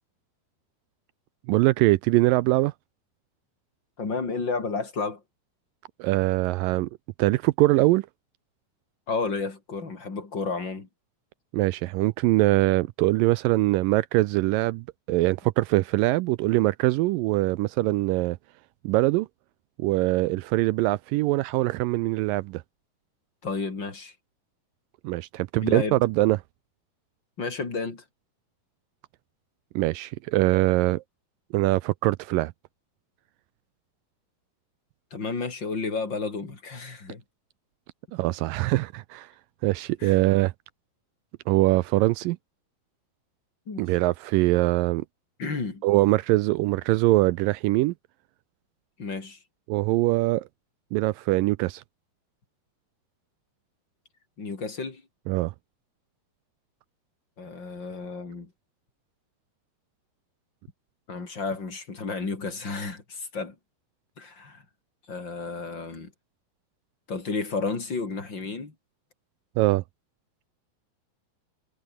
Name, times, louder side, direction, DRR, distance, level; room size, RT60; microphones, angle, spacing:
voice 1, 1.5-2.7 6.0-6.9 7.2-8.1 11.5-18.4 18.8-19.3 19.8-22.6 25.0-26.4 29.8-31.0 31.5-32.5 38.1-39.3 39.6-40.5 41.5-42.4 43.8-45.1 45.8-47.9 49.7-50.4 50.9-51.8 55.3-55.5 69.6-69.8, right 19 dB, 85° right, 2.0 m, -23 dB
voice 2, 4.0-5.2 9.1-10.9 23.4-24.1 25.5-26.0 27.4-28.0 35.1-37.2 40.0-40.2 43.7-43.9 45.4-45.8 49.0-49.4 54.4-55.0 57.4-58.5 61.1-63.5 64.2-64.6 65.1-66.1 67.1-68.7, left 4 dB, 30° left, 4.7 m, -32 dB
omnidirectional pair, 4.5 m